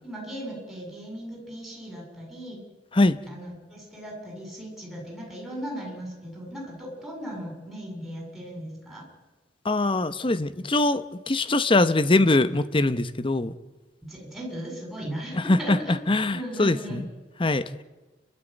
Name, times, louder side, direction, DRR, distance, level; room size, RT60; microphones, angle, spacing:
voice 1, 0.0-2.6 3.3-9.0 14.0-15.9 16.3-17.0, equal, ahead, -2 dB, 7.4 m, -37 dB
voice 2, 9.6-13.5 15.3-17.1 17.4-17.8, left 2 dB, 30° left, 13 dB, 0.9 m, -23 dB
29.5 x 13.0 x 9.2 m, 1.2 s
head